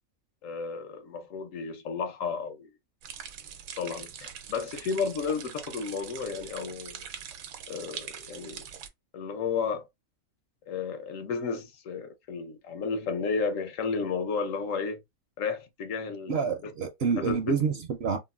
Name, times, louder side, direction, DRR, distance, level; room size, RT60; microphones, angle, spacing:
voice 1, 0.4-2.7 3.8-7.1 7.7-8.6 9.1-9.9 10.7-15.0 15.4-16.5 17.2-17.4, left 5 dB, 75° left, 1.0 m, -32 dB
sound 1, 3.0-8.9, right 8 dB, 90° right, 1.0 m, -43 dB
voice 2, 16.3-18.2, right 5 dB, 60° right, 0.7 m, -28 dB
3.8 x 2.1 x 2.3 m
omnidirectional pair, 1.4 m